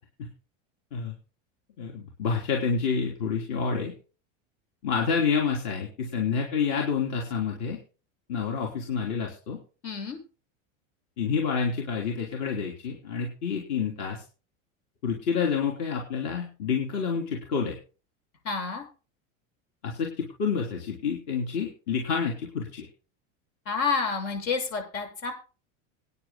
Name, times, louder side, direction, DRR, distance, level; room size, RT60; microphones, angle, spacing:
voice 1, 1.8-3.9 4.8-7.8 8.3-9.6 11.2-14.2 15.0-17.8 19.8-22.9, left 6 dB, 50° left, 0 dB, 3.4 m, -28 dB
voice 2, 9.8-10.2 18.4-18.8 23.6-25.3, left 5 dB, 75° left, 5 dB, 6.6 m, -29 dB
25.5 x 9.9 x 2.2 m, 0.35 s
supercardioid pair, 165°, 38 cm